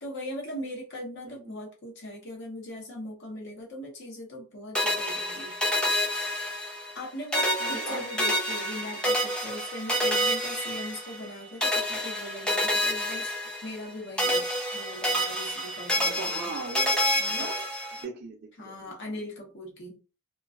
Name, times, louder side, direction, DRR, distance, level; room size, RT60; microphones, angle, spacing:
voice 1, 0.0-5.5 6.9-13.3 13.6-14.5 14.7-16.6 17.2-17.6 18.6-20.0, left 1 dB, 60° left, 0 dB, 0.7 m, -39 dB
sound 1, 4.7-7.0 7.3-11.3 11.6-13.9 14.2-18.0, equal, 5° left, 0.5 m, -28 dB
voice 2, 7.6-8.1 16.0-17.6 18.0-18.9, right 3 dB, 50° right, -1 dB, 0.4 m, -39 dB
2.3 x 2.3 x 2.3 m, 0.34 s
head